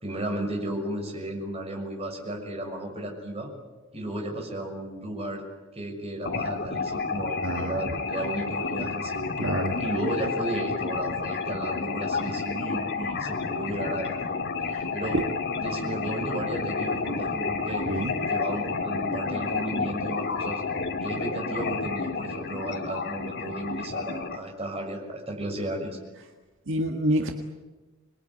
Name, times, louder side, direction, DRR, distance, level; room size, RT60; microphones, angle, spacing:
voice 1, 0.0-3.5 3.9-5.4 5.7-9.2 9.8-14.1 14.9-15.2 15.6-20.6 21.0-26.0, right 1 dB, 30° right, 2 dB, 6.5 m, -34 dB
sound 1, 6.3-24.4, left 4 dB, 55° left, 2.2 m, -30 dB
voice 2, 7.4-7.8 9.4-9.7 17.9-18.1 26.7-27.3, equal, 60° right, 4 dB, 1.8 m, -27 dB
27.5 x 21.5 x 9.8 m, 1.2 s
head